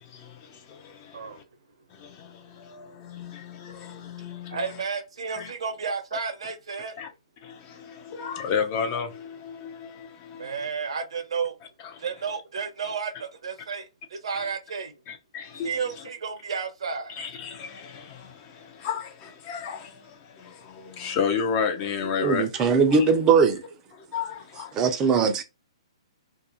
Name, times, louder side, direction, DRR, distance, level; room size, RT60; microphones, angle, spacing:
voice 1, 0.0-1.4 1.9-4.6 5.4-5.5 7.0-7.1 7.4-10.5 11.9-12.0 15.1-16.0 17.2-23.1 23.9-24.8, left 6 dB, 30° left, 0.5 m, -33 dB
voice 2, 4.5-7.0 10.4-11.5 12.0-14.9 15.6-17.1, right 5 dB, 65° right, 0.6 m, -32 dB
voice 3, 22.2-23.6 24.7-25.4, right 5 dB, 20° right, 0.4 m, -20 dB
2.3 x 2.0 x 2.8 m
hypercardioid pair, 130°, 3 cm